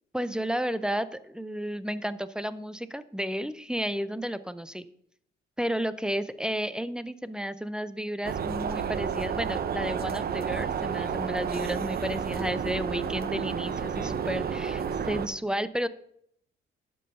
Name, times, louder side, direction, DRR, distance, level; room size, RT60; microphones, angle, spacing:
voice 1, 0.1-4.8 5.6-15.9, equal, 5° right, 14 dB, 0.6 m, -32 dB
sound 1, 8.2-15.3, right 7 dB, 50° right, 0.8 m, -31 dB
11.0 x 5.4 x 6.8 m, 0.71 s
cardioid pair, 90°, 20 cm